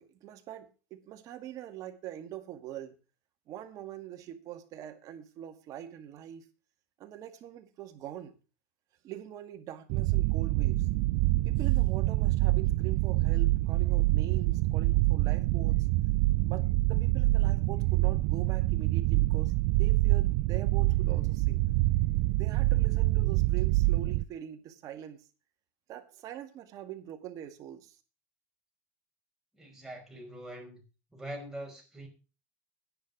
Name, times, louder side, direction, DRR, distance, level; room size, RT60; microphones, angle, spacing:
voice 1, 0.0-3.0 3.5-6.5 7.0-8.4 9.0-10.9 11.4-15.9 16.4-21.6 22.3-25.3 25.9-28.0, right 11 dB, 50° right, 2.2 m, -43 dB
sound 1, 9.9-24.2, right 19 dB, 65° right, 0.6 m, -26 dB
voice 2, 29.5-30.8 31.1-32.1, right 1 dB, 5° right, 5.7 m, -43 dB
10.5 x 10.0 x 6.2 m
supercardioid pair, 130°, 8 cm